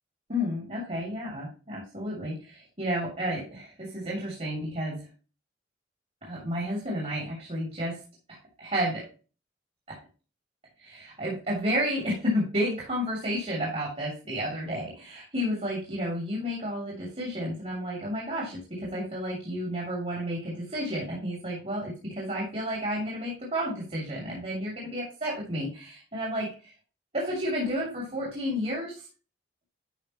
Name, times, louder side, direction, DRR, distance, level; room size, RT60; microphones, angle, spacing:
voice 1, 0.3-5.0 6.2-8.0 8.3-9.0 9.9-10.0 10.8-26.7 27.1-29.1, equal, 35° right, -4 dB, 2.8 m, -31 dB
10.5 x 5.8 x 3.0 m, 0.35 s
head